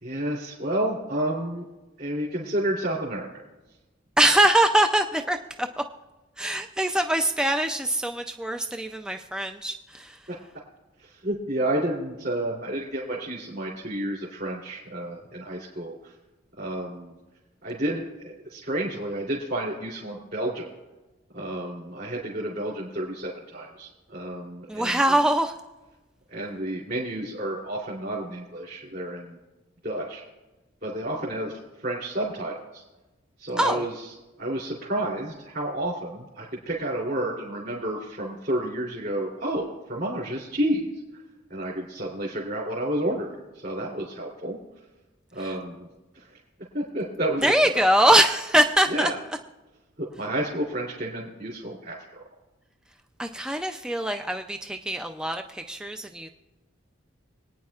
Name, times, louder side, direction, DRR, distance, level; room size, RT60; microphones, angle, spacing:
voice 1, 0.0-1.6 2.0-3.4 10.3-10.4 11.0-16.1 16.6-17.1 17.6-20.7 21.3-25.3 26.3-29.4 29.8-30.2 30.8-32.8 33.4-40.9 41.5-43.3 43.6-44.6 45.3-45.9 46.1-46.4 46.7-47.8 48.9-49.2 50.0-52.2, right 1 dB, 50° right, -5 dB, 3.0 m, -30 dB
voice 2, 4.2-5.7 6.4-10.2 24.7-25.5 33.6-33.8 47.4-49.1 53.2-56.3, right 1 dB, 5° right, 6 dB, 0.4 m, -23 dB
25.5 x 9.4 x 2.4 m, 1.1 s
head